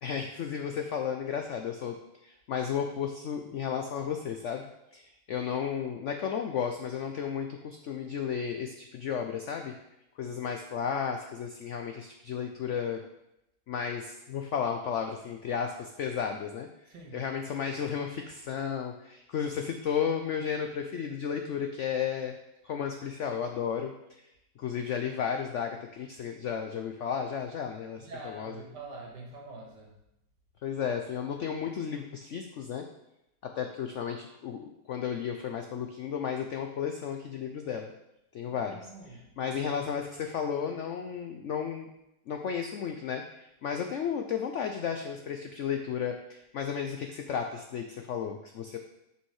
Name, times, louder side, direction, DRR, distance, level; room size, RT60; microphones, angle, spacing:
voice 1, 0.0-2.0 2.2-9.7 10.2-13.0 13.7-16.7 17.1-22.3 22.6-23.9 24.6-28.5 30.6-32.8 33.5-37.9 38.3-38.8 39.4-41.9 42.3-48.8, left 7 dB, 80° left, 4 dB, 0.6 m, -33 dB
voice 2, 16.9-17.2 28.0-29.9 38.5-39.3, right 2 dB, 75° right, -1 dB, 2.1 m, -45 dB
6.4 x 5.5 x 4.7 m, 0.87 s
omnidirectional pair, 1.9 m